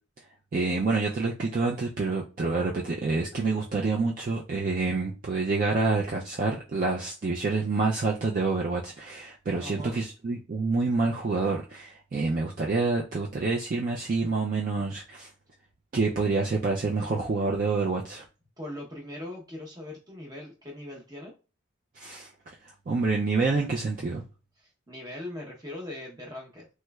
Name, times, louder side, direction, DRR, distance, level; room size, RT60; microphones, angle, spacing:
voice 1, 0.5-15.3 15.9-18.2 22.0-22.3 22.6-24.2, right 3 dB, 45° right, -1 dB, 0.4 m, -27 dB
voice 2, 9.6-10.0 18.6-21.3 24.6-26.7, left 1 dB, 20° right, -1 dB, 0.8 m, -40 dB
3.2 x 3.0 x 2.3 m, 0.33 s
head